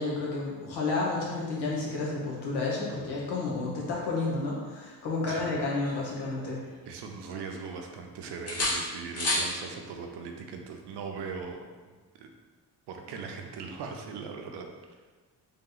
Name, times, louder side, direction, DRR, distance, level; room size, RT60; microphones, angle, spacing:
voice 1, 0.0-6.6, left 3 dB, 85° left, -4 dB, 1.2 m, -31 dB
sound 1, 5.3-6.9 7.2-8.1 8.5-9.5 11.4-11.6, left 1 dB, 40° left, 1.0 m, -33 dB
voice 2, 6.9-12.3 12.9-14.7, right 5 dB, 85° right, 3 dB, 0.7 m, -40 dB
3.5 x 2.9 x 3.8 m, 1.4 s
cardioid pair, 140°, 39 cm